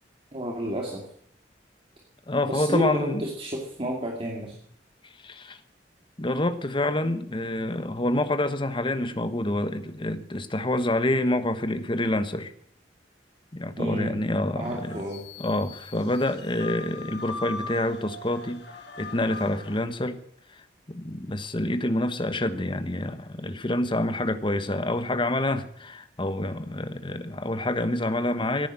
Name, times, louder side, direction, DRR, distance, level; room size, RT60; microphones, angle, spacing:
voice 1, 0.3-1.1 2.4-4.6 13.8-14.3 14.6-15.2, equal, 35° right, 2.4 m, -31 dB
voice 2, 2.3-3.2 5.2-5.6 6.2-12.5 13.5-15.0 15.4-18.6 19.0-20.2 20.9-28.7, left 1 dB, 30° left, 1.2 m, -27 dB
sound 1, 14.6-19.8, left 3 dB, 75° left, 3.0 m, -40 dB
16.0 x 10.0 x 7.6 m
head